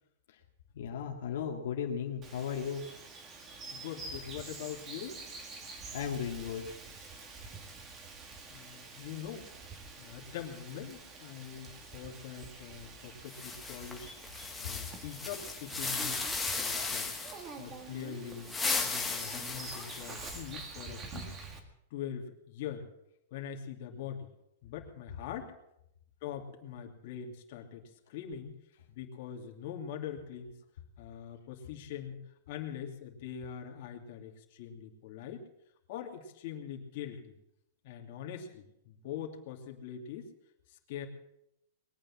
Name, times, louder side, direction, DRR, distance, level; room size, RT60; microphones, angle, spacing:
voice 1, 0.7-2.8 5.9-6.7, left 7 dB, 70° left, 0 dB, 2.1 m, -35 dB
Bird vocalization bird call bird song, 2.2-21.6, right 4 dB, 20° right, 1.9 m, -47 dB
voice 2, 3.7-5.2 8.5-9.5 10.0-14.1 14.6-17.1 17.6-18.5 18.8-21.4 21.9-22.9 23.3-24.3 24.6-25.5 26.2-28.6 28.9-30.6 31.0-32.2 32.5-35.4 35.9-37.3 37.8-40.3 40.7-41.1, left 8 dB, 45° left, 1 dB, 2.8 m, -43 dB
sound 1, 13.3-17.5 18.3-20.6, left 4 dB, 5° left, 1.6 m, -36 dB
21.0 x 9.0 x 7.3 m, 0.81 s
supercardioid pair, 165°, 0 cm